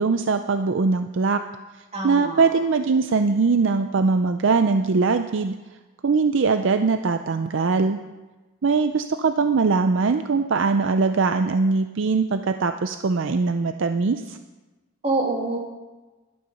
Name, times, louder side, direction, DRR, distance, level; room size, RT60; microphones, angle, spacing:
voice 1, 0.0-1.4 2.0-5.6 6.0-8.0 8.6-14.4, right 4 dB, 60° right, 8 dB, 0.5 m, -21 dB
voice 2, 1.9-2.5 15.0-15.6, right 2 dB, 30° right, 0 dB, 2.2 m, -25 dB
12.5 x 12.0 x 5.4 m, 1.2 s
head